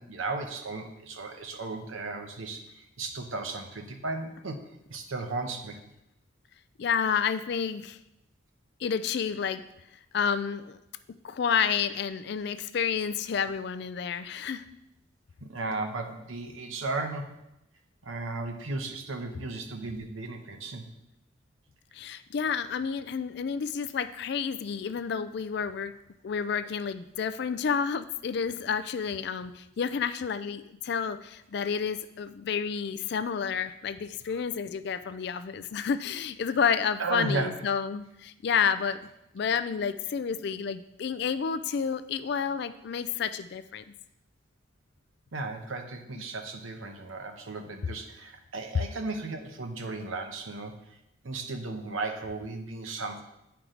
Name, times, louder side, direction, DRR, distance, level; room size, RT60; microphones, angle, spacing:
voice 1, 0.0-4.6 4.9-5.8 15.4-17.4 18.0-20.9 34.3-34.4 37.0-37.5 45.3-50.8 51.2-53.2, right 3 dB, 85° right, 5 dB, 0.9 m, -35 dB
voice 2, 6.8-8.0 8.8-9.6 10.1-10.8 11.2-14.6 21.9-25.9 26.2-39.0 39.3-43.8, left 6 dB, 55° left, 12 dB, 0.3 m, -30 dB
9.2 x 4.7 x 3.8 m, 0.85 s
head